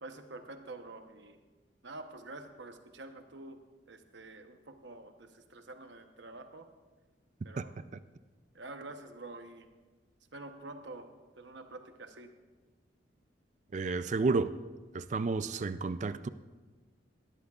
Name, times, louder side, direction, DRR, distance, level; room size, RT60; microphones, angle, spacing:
voice 1, 0.0-1.4 1.8-3.6 3.9-6.7 7.4-7.7 8.5-9.7 10.3-11.1 11.4-12.3, right 2 dB, 65° right, 1.0 m, -47 dB
voice 2, 13.7-14.5 14.9-16.3, right 4 dB, 40° right, 0.3 m, -31 dB
19.0 x 13.5 x 2.4 m
head